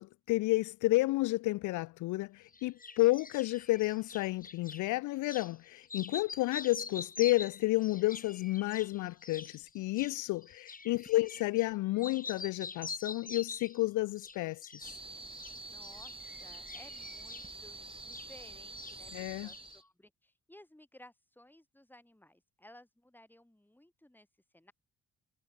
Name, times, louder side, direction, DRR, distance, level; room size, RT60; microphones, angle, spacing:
voice 1, 0.0-14.7 19.1-19.5, left 19 dB, 85° left, 0.5 m, -31 dB
sound 1, 2.5-4.8 5.3-5.5 5.8-11.7 12.0-13.8 14.2-15.0 15.3-18.5 18.8-19.8, left 4 dB, 30° left, 4.9 m, -46 dB
sound 2, 14.8-19.8, right 3 dB, 20° right, 3.5 m, -47 dB
voice 2, 15.7-24.3 24.5-24.7, left 1 dB, 5° left, 6.1 m, -58 dB
cardioid pair, 90°, 30 cm